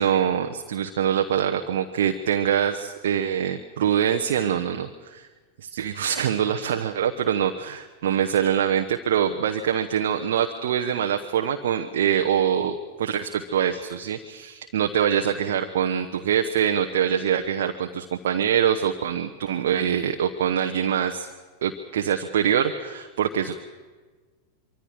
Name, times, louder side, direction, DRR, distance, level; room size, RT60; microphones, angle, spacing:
voice 1, 0.0-5.3 5.6-21.3 21.6-23.6, right 9 dB, 60° right, 4 dB, 1.0 m, -24 dB
25.0 x 24.5 x 4.7 m, 1.3 s
figure-of-eight pair, 90°, 0 cm